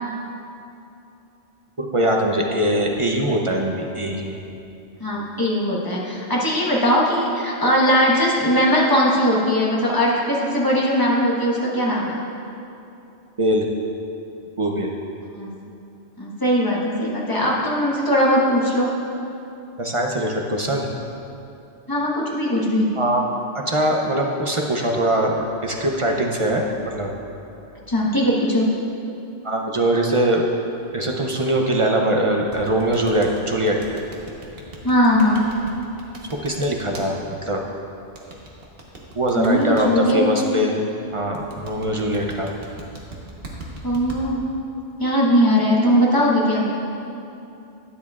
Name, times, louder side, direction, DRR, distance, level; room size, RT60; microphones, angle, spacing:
voice 1, 1.8-4.4 13.4-13.6 14.6-14.9 19.8-20.9 23.0-23.2 23.7-27.1 29.4-30.4 30.9-33.8 36.4-37.1 37.4-37.6 39.1-40.8 41.1-42.5, right 1 dB, 35° right, 1 dB, 0.6 m, -22 dB
voice 2, 5.0-12.1 15.4-15.5 16.2-18.9 21.9-22.9 27.9-28.7 34.8-35.4 39.3-40.2 43.8-44.5 45.0-46.6, equal, 20° left, -4 dB, 1.3 m, -19 dB
sound 1, 32.5-37.0 38.1-39.8 41.3-44.2, right 2 dB, 55° right, 1.3 m, -39 dB
12.0 x 9.4 x 2.4 m, 2.8 s
omnidirectional pair, 1.2 m